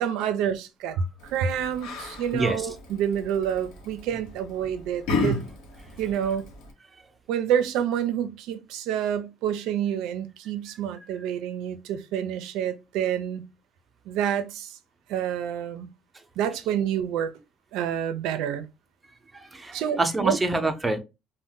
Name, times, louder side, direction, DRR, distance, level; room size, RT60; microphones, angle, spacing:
voice 1, 0.0-5.4 6.0-6.4 7.3-13.4 14.1-14.8 15.1-15.9 16.4-17.3 17.7-18.7 19.7-20.4, right 9 dB, 90° right, 0.4 m, -28 dB
Yell, 1.2-6.7, left 3 dB, 90° left, 0.8 m, -34 dB
voice 2, 2.3-2.7 19.3-21.0, right 2 dB, 15° right, 0.5 m, -26 dB
2.6 x 2.1 x 3.6 m
cardioid pair, 125°, 0 cm